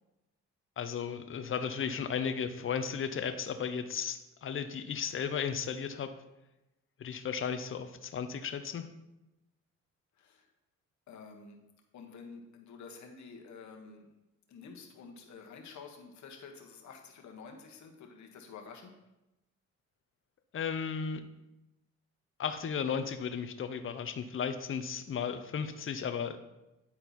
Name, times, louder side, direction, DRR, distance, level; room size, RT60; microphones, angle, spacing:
voice 1, 0.8-6.1 7.0-8.9 20.5-21.2 22.4-26.4, left 7 dB, 45° left, 9 dB, 0.7 m, -35 dB
voice 2, 10.2-10.5 11.1-11.6 11.9-14.1 14.5-18.9, left 5 dB, 70° left, 2 dB, 1.4 m, -49 dB
9.7 x 4.4 x 4.2 m, 0.96 s
cardioid pair, 90°, 30 cm